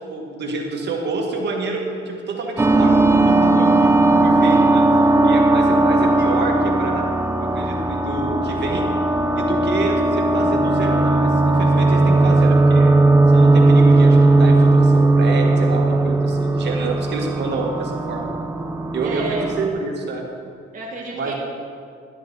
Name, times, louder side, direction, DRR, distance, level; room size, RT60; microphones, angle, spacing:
voice 1, 0.0-3.9 4.2-4.9 5.2-7.1 7.4-8.8 9.3-12.9 13.3-18.3 18.9-20.3 21.1-21.3, right 3 dB, 60° right, 1 dB, 1.9 m, -28 dB
sound 1, 2.6-19.7, right 2 dB, 15° right, 0.7 m, -17 dB
voice 2, 19.0-19.5 20.7-21.3, right 3 dB, 40° right, -2 dB, 1.5 m, -30 dB
12.0 x 11.0 x 4.0 m, 2.3 s
cardioid pair, 90°, 20 cm